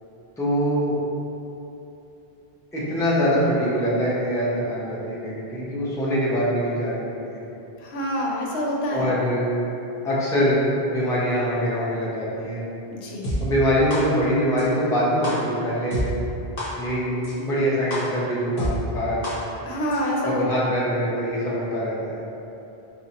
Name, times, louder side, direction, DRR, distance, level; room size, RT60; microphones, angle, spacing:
voice 1, 0.4-1.0 2.7-7.4 8.9-9.5 10.0-10.6 10.9-12.6 13.4-16.1 16.8-19.2 20.2-22.2, equal, 5° left, -8 dB, 0.5 m, -24 dB
voice 2, 7.8-9.1 12.9-13.3 19.7-20.6, equal, 85° left, -2 dB, 0.8 m, -26 dB
sound 1, 13.2-13.3 13.9-14.0 14.6-14.7 15.2-15.3 15.9-16.0 16.6-16.7 17.2-17.3 17.9-18.0 18.6-18.7 19.2-19.3 19.9-20.0, left 1 dB, 60° left, 1.0 m, -28 dB
5.1 x 2.0 x 2.8 m, 2.9 s
omnidirectional pair, 1.1 m